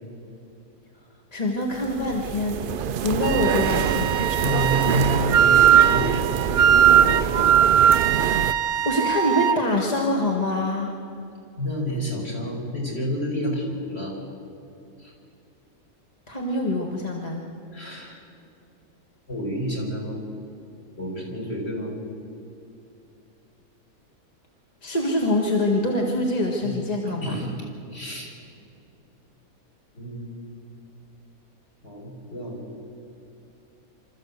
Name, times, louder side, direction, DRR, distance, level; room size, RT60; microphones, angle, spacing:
voice 1, 1.3-2.6 3.0-4.1 8.9-10.9 16.3-17.4 24.8-27.4, left 1 dB, 25° left, -1 dB, 1.7 m, -24 dB
sound 1, 1.7-8.5, right 8 dB, 70° right, 0.5 m, -26 dB
Wind instrument woodwind instrument, 3.2-9.6, right 9 dB, 90° right, 1.3 m, -19 dB
voice 2, 4.3-7.5 11.6-14.2 15.0-15.1 17.7-18.2 19.3-20.2 21.0-22.0 26.6-26.7 27.1-27.5 27.9-28.3 29.9-30.3 31.8-32.6, equal, 45° left, -3 dB, 5.3 m, -29 dB
25.5 x 14.0 x 8.1 m, 2.7 s
omnidirectional pair, 1.5 m